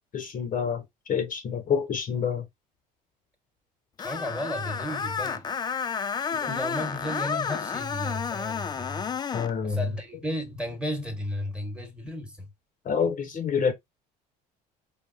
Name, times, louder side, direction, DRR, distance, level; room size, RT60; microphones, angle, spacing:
voice 1, 0.0-2.5 6.3-6.6 9.3-9.9 12.8-13.7, left 6 dB, 40° left, 0.8 m, -28 dB
Screech, 4.0-9.5, left 6 dB, 20° left, 0.3 m, -31 dB
voice 2, 4.0-5.5 6.4-9.1 9.6-12.5, left 1 dB, 5° right, 1.1 m, -34 dB
3.4 x 2.4 x 2.4 m
hypercardioid pair, 70°, 21 cm